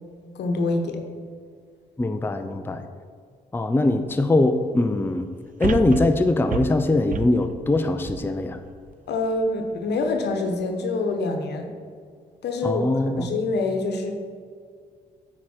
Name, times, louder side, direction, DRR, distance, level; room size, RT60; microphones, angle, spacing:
voice 1, 0.3-1.0 9.1-11.7 12.4-14.1, left 2 dB, 70° left, 5 dB, 1.0 m, -26 dB
voice 2, 2.0-2.8 3.5-5.3 5.6-8.6 12.6-13.3, left 2 dB, 10° left, 7 dB, 0.5 m, -22 dB
sound 1, 3.9-4.0 5.6-8.9 9.4-9.5, right 8 dB, 50° right, 0.5 m, -31 dB
8.3 x 4.9 x 4.4 m, 2.1 s
supercardioid pair, 55°, 18 cm